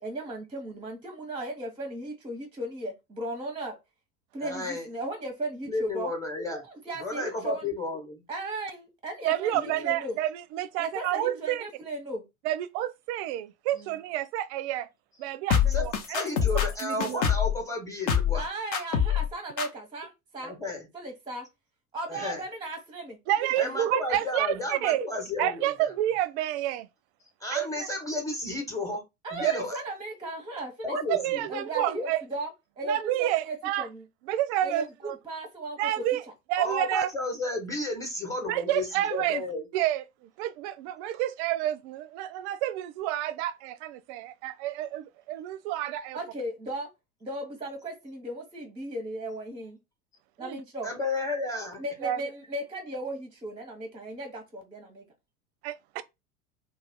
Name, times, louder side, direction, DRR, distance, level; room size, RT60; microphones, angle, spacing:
voice 1, 0.0-3.7 4.3-6.1 6.8-7.6 8.3-10.2 10.8-12.2 13.8-14.0 18.3-20.5 20.9-21.4 21.9-23.8 29.2-31.0 31.5-32.5 32.8-34.0 34.6-35.8 46.1-46.9 47.2-49.8 50.4-50.9 51.8-55.1, right 1 dB, 15° right, 0.7 m, -36 dB
voice 2, 4.4-4.9 5.7-6.7 7.0-8.2 9.6-9.8 15.7-18.5 20.4-20.9 22.1-22.4 23.6-25.9 27.4-29.0 29.3-29.7 30.8-31.5 36.6-39.7 50.8-51.8, left 2 dB, 5° left, 1.0 m, -32 dB
voice 3, 9.2-11.6 12.4-14.9 15.2-16.3 16.5-17.2 23.3-25.0 25.4-26.9 27.5-27.9 29.4-29.5 31.1-32.2 32.8-33.9 34.3-35.2 35.8-36.2 36.5-37.1 38.5-39.4 39.7-46.2 50.4-50.6 52.0-52.2 55.6-56.0, right 13 dB, 55° right, 0.4 m, -29 dB
sound 1, 15.5-17.6 18.1-18.4 18.7-19.3 19.6-19.7, left 8 dB, 50° left, 0.8 m, -25 dB
2.3 x 2.2 x 3.4 m
hypercardioid pair, 80°, 43 cm